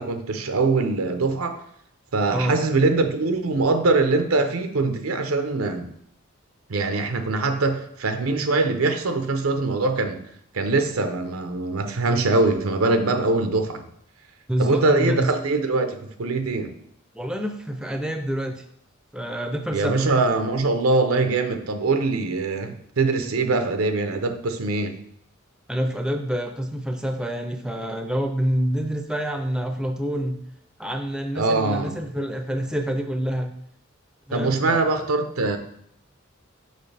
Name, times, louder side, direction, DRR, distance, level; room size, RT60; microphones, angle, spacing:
voice 1, 0.0-1.6 2.1-5.9 6.7-10.2 10.5-13.9 14.6-16.7 19.7-24.9 31.3-31.9 34.3-35.6, right 3 dB, 90° right, 7 dB, 0.8 m, -23 dB
voice 2, 14.5-15.3 17.1-18.6 19.1-20.1 25.7-30.4 30.8-33.5 34.3-34.8, equal, 5° right, 5 dB, 0.5 m, -27 dB
6.6 x 5.7 x 3.4 m, 0.71 s
head